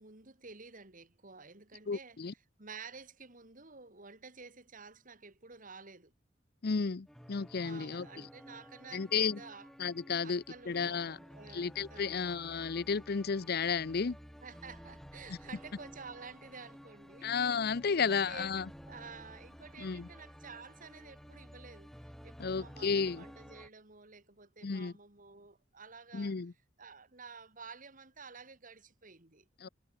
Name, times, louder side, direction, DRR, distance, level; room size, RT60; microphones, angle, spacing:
voice 1, 0.0-6.1 7.5-9.7 10.2-12.2 14.4-17.3 17.9-21.9 22.2-26.4 26.8-29.5, right 5 dB, 45° right, 3.3 m, -51 dB
voice 2, 1.9-2.3 6.6-8.3 8.9-9.4 9.8-11.2 11.5-14.2 17.2-18.7 19.8-20.1 22.4-23.2 24.6-24.9 26.1-26.5 29.6-29.7, left 5 dB, 55° left, 0.6 m, -33 dB
sound 1, 7.1-23.7, equal, ahead, 2.1 m, -53 dB
head